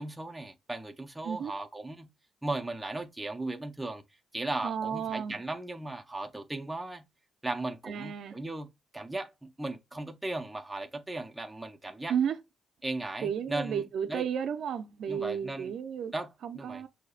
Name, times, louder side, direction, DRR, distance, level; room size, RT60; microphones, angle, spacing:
voice 1, 0.0-2.1 2.4-4.0 4.3-7.0 7.4-8.7 8.9-12.1 12.8-14.2 15.1-15.7 16.1-16.8, right 2 dB, 5° right, 0.5 m, -37 dB
voice 2, 4.6-5.4 7.8-8.4 12.1-12.4 13.2-16.1 16.4-16.9, right 8 dB, 55° right, 0.5 m, -33 dB
6.4 x 2.7 x 2.4 m
cardioid pair, 155°, 0 cm